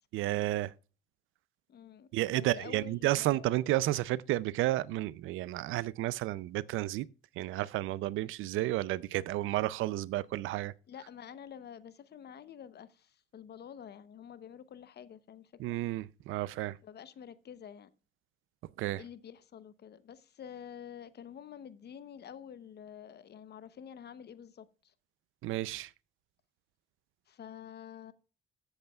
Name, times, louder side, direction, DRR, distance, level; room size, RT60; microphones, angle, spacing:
voice 1, 0.1-0.7 2.1-7.1 7.4-10.7 15.6-16.8 18.8-19.0 25.4-25.9, right 16 dB, 90° right, 0.5 m, -32 dB
voice 2, 1.7-3.5 10.9-15.8 16.8-17.9 18.9-24.9 27.3-28.1, left 8 dB, 55° left, 0.9 m, -48 dB
14.5 x 8.0 x 2.3 m
cardioid pair, 90°, 20 cm